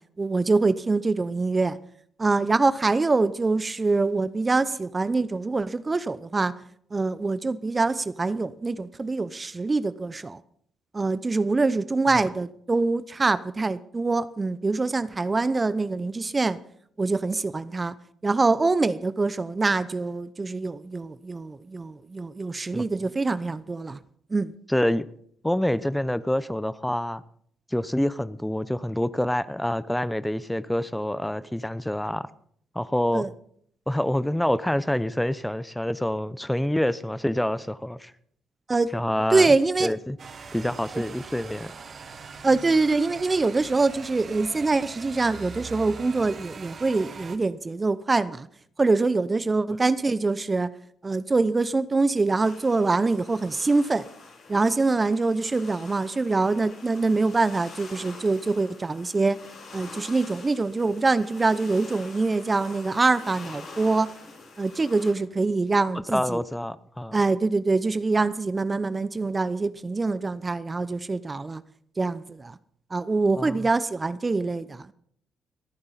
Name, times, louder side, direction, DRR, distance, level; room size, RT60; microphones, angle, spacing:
voice 1, 0.2-1.8 2.2-6.5 6.9-10.4 10.9-16.6 17.0-17.9 18.2-24.0 24.3-24.5 33.1-33.3 38.7-38.9 39.3-39.9 42.4-48.5 48.8-50.7 51.0-54.1 54.5-59.4 59.7-64.1 64.6-66.4 67.1-71.6 72.0-72.6 72.9-74.9, right 3 dB, 30° right, 0.7 m, -24 dB
voice 2, 24.7-25.1 25.4-27.2 27.7-32.3 32.7-33.3 33.9-38.1 38.9-39.5 39.8-40.2 40.5-41.7 65.9-67.1 73.4-73.6, left 1 dB, 5° left, 0.8 m, -27 dB
sound 1, 40.2-47.4, right 5 dB, 50° right, 1.5 m, -42 dB
sound 2, 52.4-65.1, left 4 dB, 60° left, 6.4 m, -46 dB
27.0 x 9.6 x 4.1 m
hypercardioid pair, 45°, 0 cm